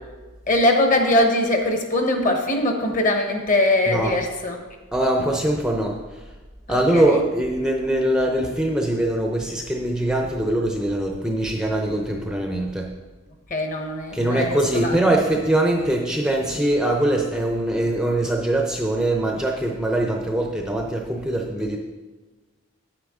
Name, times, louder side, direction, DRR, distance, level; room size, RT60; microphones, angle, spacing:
voice 1, 0.5-4.6 6.7-7.2 13.5-14.9, left 1 dB, 35° left, 3 dB, 1.2 m, -21 dB
voice 2, 3.9-4.2 4.9-6.2 6.7-12.9 14.1-21.8, right 1 dB, 5° right, 1 dB, 0.6 m, -22 dB
9.5 x 9.3 x 3.7 m, 1.3 s
head